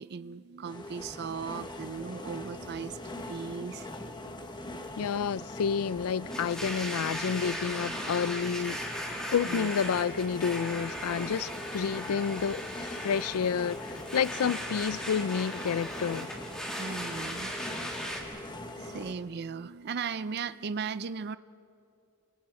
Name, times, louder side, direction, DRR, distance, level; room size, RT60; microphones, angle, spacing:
voice 1, 0.0-3.9 9.4-9.7 16.8-17.5 18.1-21.4, right 5 dB, 50° right, 0.4 m, -37 dB
sound 1, 0.6-19.1, left 1 dB, 20° left, 1.3 m, -42 dB
voice 2, 5.0-8.8 9.3-16.3, left 7 dB, 90° left, 0.4 m, -30 dB
Domestic sounds home sounds, 6.3-18.2, equal, 5° left, 2.6 m, -38 dB
28.5 x 24.5 x 4.8 m
head